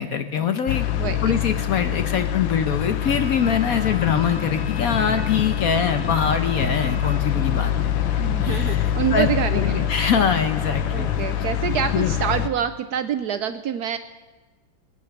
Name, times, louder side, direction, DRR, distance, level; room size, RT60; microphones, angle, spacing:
voice 1, 0.0-9.3 9.5-11.1 11.9-12.1, left 7 dB, 60° left, 8 dB, 1.1 m, -24 dB
sound 1, 0.7-12.5, left 11 dB, 85° left, 1.5 m, -25 dB
voice 2, 1.0-1.4 8.2-9.9 10.9-14.0, right 8 dB, 70° right, 10 dB, 1.0 m, -26 dB
Wind instrument woodwind instrument, 3.0-7.3, right 2 dB, 30° right, 3.2 m, -42 dB
sound 2, 6.5-12.4, equal, ahead, 3.4 m, -39 dB
21.5 x 9.3 x 6.5 m, 1.3 s
omnidirectional pair, 2.1 m